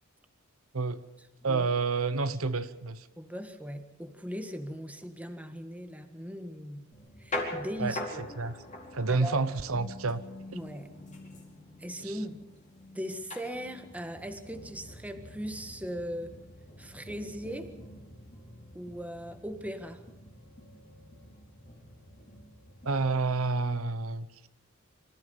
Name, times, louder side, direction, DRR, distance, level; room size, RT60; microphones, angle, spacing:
voice 1, 1.4-3.1 7.8-7.9 8.4-8.6 8.9-10.2 12.0-12.2 22.8-24.5, right 4 dB, 90° right, 13 dB, 1.0 m, -29 dB
voice 2, 3.2-6.9 7.2-8.2 9.1-9.4 10.5-10.9 11.8-12.4 12.9-16.4 16.8-17.7 18.7-20.0, equal, 5° right, 7 dB, 1.7 m, -39 dB
sound 1, 6.9-23.1, left 1 dB, 35° left, 4.6 m, -44 dB
26.0 x 15.0 x 7.1 m, 0.93 s
head